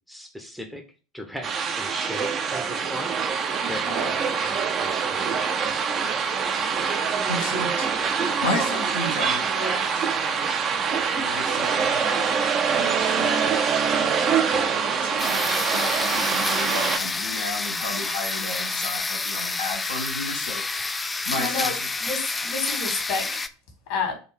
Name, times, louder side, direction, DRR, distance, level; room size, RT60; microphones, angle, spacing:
voice 1, 0.1-0.8 1.1-3.2 3.7-5.7, equal, ahead, 4 dB, 0.7 m, -37 dB
sound 1, 1.4-17.0, right 6 dB, 35° right, 0.6 m, -24 dB
voice 2, 7.3-7.9 8.2-10.1 11.1-15.4 15.7-20.9 21.2-21.9, left 2 dB, 75° left, 0 dB, 0.9 m, -34 dB
sound 2, 15.2-23.5, left 3 dB, 15° left, 0.4 m, -28 dB
voice 3, 21.3-21.7 22.0-23.3 23.9-24.1, left 4 dB, 60° left, 3 dB, 1.7 m, -29 dB
4.0 x 2.6 x 4.5 m, 0.36 s
figure-of-eight pair, 75°, 0 cm